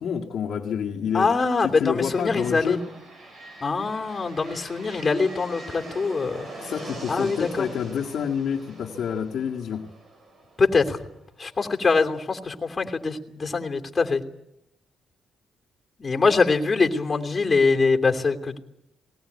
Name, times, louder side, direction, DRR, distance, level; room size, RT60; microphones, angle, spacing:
voice 1, 0.0-1.3 1.6-2.8 6.6-9.9, left 7 dB, 65° left, -1 dB, 2.0 m, -28 dB
voice 2, 1.1-2.8 3.6-6.5 7.1-7.7 10.6-11.0 11.4-14.2 16.0-18.6, left 4 dB, 30° left, 3 dB, 2.9 m, -23 dB
sound 1, 1.7-11.5, right 2 dB, 45° right, 7.1 m, -43 dB
20.0 x 18.5 x 9.6 m, 0.84 s
cardioid pair, 90°, 0 cm